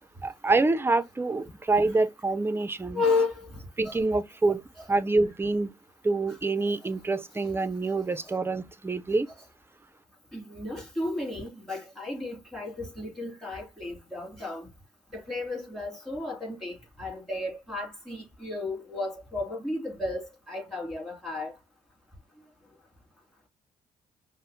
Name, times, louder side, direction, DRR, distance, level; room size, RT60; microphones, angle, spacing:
voice 1, 0.2-3.0 3.8-4.6 4.9-5.7 6.0-9.3, right 3 dB, 20° right, 0.4 m, -26 dB
voice 2, 2.9-4.0 4.8-4.9 8.2-8.3 10.3-14.7 15.1-21.5, left 3 dB, 5° left, 2.3 m, -33 dB
5.4 x 2.0 x 2.6 m
supercardioid pair, 75°, 13 cm